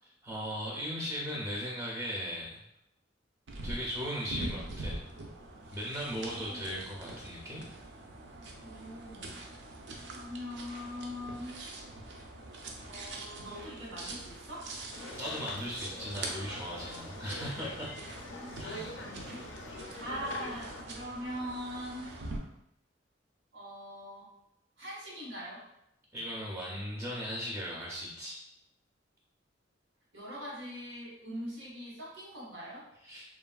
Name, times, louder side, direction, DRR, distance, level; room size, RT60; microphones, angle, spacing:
voice 1, 0.2-2.6 3.6-5.0 5.7-7.6 15.2-17.9 18.6-18.9 26.1-28.4 33.0-33.2, equal, 15° right, -5 dB, 0.4 m, -37 dB
sound 1, 3.5-22.4, right 2 dB, 70° right, 0.4 m, -44 dB
voice 2, 6.1-6.8 8.6-9.4 10.1-11.6 12.8-14.7 18.3-22.2 23.5-24.3 24.8-25.7 30.1-32.9, equal, 90° right, -5 dB, 1.2 m, -42 dB
sound 2, 14.9-20.8, left 2 dB, 80° left, 0.4 m, -45 dB
3.0 x 2.4 x 2.2 m, 0.80 s
head